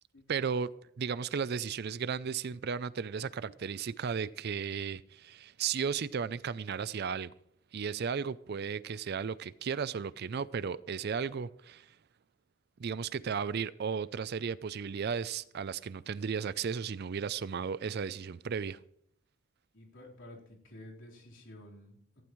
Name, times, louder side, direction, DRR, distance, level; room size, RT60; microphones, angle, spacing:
voice 1, 0.3-0.7 1.0-7.3 7.7-11.9 12.8-18.8, right 6 dB, 50° right, 0.4 m, -35 dB
voice 2, 19.7-22.2, left 1 dB, 60° left, 4.0 m, -51 dB
18.0 x 15.5 x 3.1 m
head